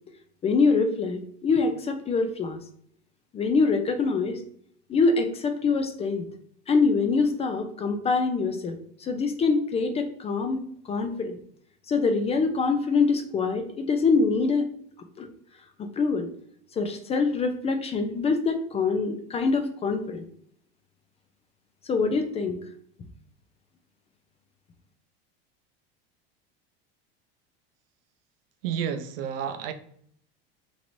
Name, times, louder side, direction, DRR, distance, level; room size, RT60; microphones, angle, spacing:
voice 1, 0.4-2.6 3.3-4.4 4.9-6.3 6.7-11.4 11.9-14.7 15.2-15.3 16.0-16.3 16.8-20.2 21.8-22.6, left 4 dB, 20° left, 7 dB, 0.3 m, -24 dB
voice 2, 28.6-29.7, right 8 dB, 70° right, 9 dB, 0.5 m, -30 dB
3.0 x 3.0 x 2.5 m, 0.64 s
supercardioid pair, 110°, 30 cm